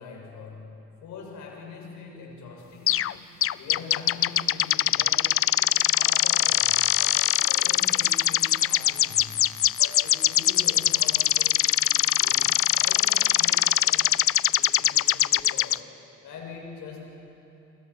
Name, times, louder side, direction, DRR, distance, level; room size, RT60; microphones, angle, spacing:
voice 1, 0.0-14.2 14.6-15.9 16.2-17.1, left 4 dB, 80° left, 0 dB, 6.4 m, -43 dB
sound 1, 2.9-3.1 3.4-15.8, left 12 dB, 50° left, 0.5 m, -22 dB
27.0 x 26.5 x 5.8 m, 2.9 s
cardioid pair, 90°, 30 cm